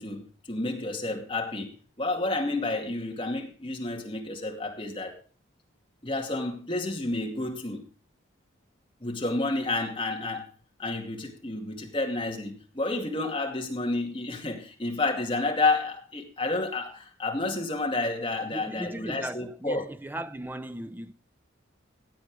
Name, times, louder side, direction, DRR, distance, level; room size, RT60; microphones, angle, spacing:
voice 1, 0.0-5.2 6.0-7.8 9.0-10.5 10.8-19.8, left 2 dB, 25° left, 2.3 m, -30 dB
voice 2, 18.5-21.1, right 1 dB, 10° right, 0.6 m, -37 dB
16.0 x 8.2 x 4.9 m
head